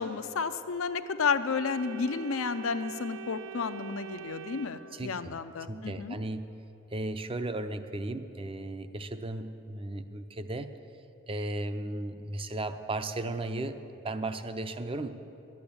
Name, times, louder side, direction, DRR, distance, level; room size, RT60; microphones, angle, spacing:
voice 1, 0.0-6.2, left 5 dB, 90° left, 10 dB, 0.6 m, -32 dB
Organ, 1.5-5.5, right 7 dB, 75° right, 0.5 m, -44 dB
voice 2, 4.9-5.3 5.7-6.5 6.9-10.7 11.3-13.7 14.0-15.1, right 2 dB, 25° right, 10 dB, 0.5 m, -35 dB
11.5 x 8.5 x 8.6 m, 2.9 s
head